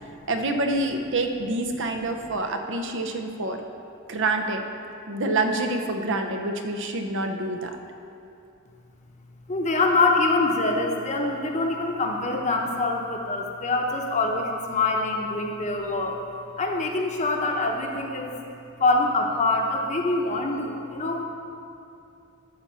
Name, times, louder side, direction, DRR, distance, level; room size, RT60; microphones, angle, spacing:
voice 1, 0.3-3.6 4.1-4.6 5.1-7.7, right 2 dB, 65° right, 5 dB, 0.8 m, -27 dB
voice 2, 9.5-16.2 16.6-18.4 18.8-21.3, left 2 dB, 35° left, 1 dB, 0.9 m, -25 dB
12.0 x 4.2 x 6.8 m, 2.6 s
head